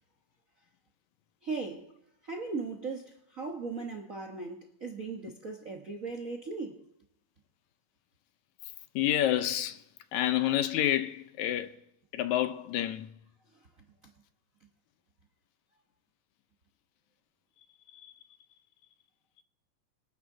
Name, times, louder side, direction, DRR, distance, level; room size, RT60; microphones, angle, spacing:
voice 1, 1.4-1.9 2.2-6.8, right 4 dB, 60° right, 0.8 m, -38 dB
voice 2, 9.0-9.8 10.1-11.8 12.1-13.1 17.9-18.1, left 12 dB, 75° left, 1.9 m, -29 dB
25.5 x 10.5 x 3.9 m
omnidirectional pair, 3.6 m